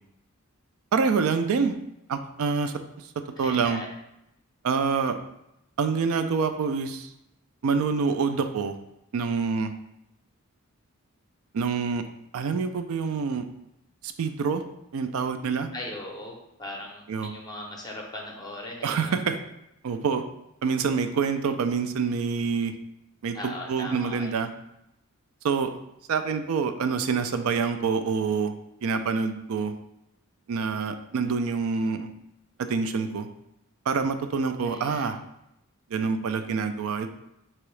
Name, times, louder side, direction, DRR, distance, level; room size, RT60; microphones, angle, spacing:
voice 1, 0.9-1.8 2.1-2.7 3.4-3.8 4.6-5.2 5.8-7.1 7.6-8.8 9.1-9.7 11.5-12.0 12.3-13.5 14.0-14.6 14.9-15.7 17.1-17.3 18.8-19.4 19.8-20.2 20.6-22.7 23.2-24.5 25.4-25.7 26.1-28.5 28.8-29.7 30.5-32.1 32.6-33.3 33.9-35.2 35.9-37.1, right 5 dB, 70° right, 9 dB, 0.4 m, -26 dB
voice 2, 3.4-3.9 15.7-19.1 23.3-24.4 34.6-35.1, left 1 dB, 20° left, -1 dB, 0.5 m, -39 dB
4.5 x 2.9 x 3.2 m, 0.85 s
head